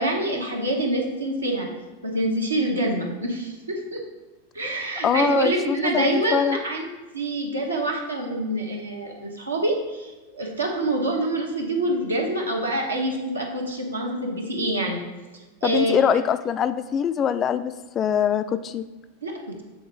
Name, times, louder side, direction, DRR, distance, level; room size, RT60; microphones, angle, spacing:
voice 1, 0.0-1.7 2.0-4.0 4.5-6.9 7.1-15.0 15.6-16.0 19.2-19.6, right 1 dB, 80° right, 1 dB, 1.1 m, -26 dB
voice 2, 5.0-6.6 15.6-18.8, left 8 dB, 30° left, 11 dB, 0.3 m, -23 dB
7.8 x 3.8 x 4.8 m, 1.2 s
figure-of-eight pair, 90°, 0 cm